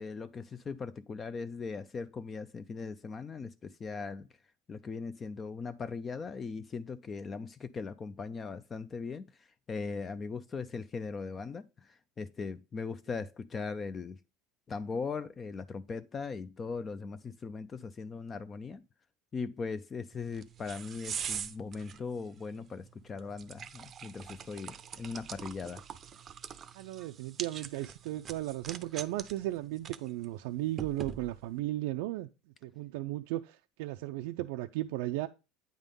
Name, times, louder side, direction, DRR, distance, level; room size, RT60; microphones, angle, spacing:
voice 1, 0.0-4.3 4.7-14.2 14.7-18.8 19.3-25.8, left 4 dB, 25° left, 0.3 m, -39 dB
sound 1, 20.1-31.6, right 7 dB, 30° right, 0.5 m, -44 dB
voice 2, 26.7-32.3 32.6-35.3, right 16 dB, 80° right, 0.4 m, -35 dB
9.0 x 3.6 x 5.2 m
cardioid pair, 145°, 0 cm